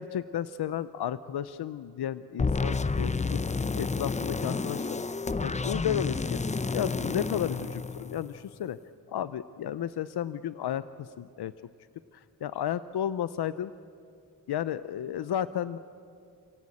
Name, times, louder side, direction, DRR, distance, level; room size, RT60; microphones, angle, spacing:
voice 1, 0.0-5.0 5.4-6.4 6.7-8.8 9.1-11.5 12.1-13.7 14.5-15.8, left 10 dB, 80° left, 14 dB, 0.6 m, -33 dB
sound 1, 2.4-8.6, left 4 dB, 20° left, 0.6 m, -30 dB
28.0 x 17.5 x 8.5 m, 2.5 s
cardioid pair, 85°, 38 cm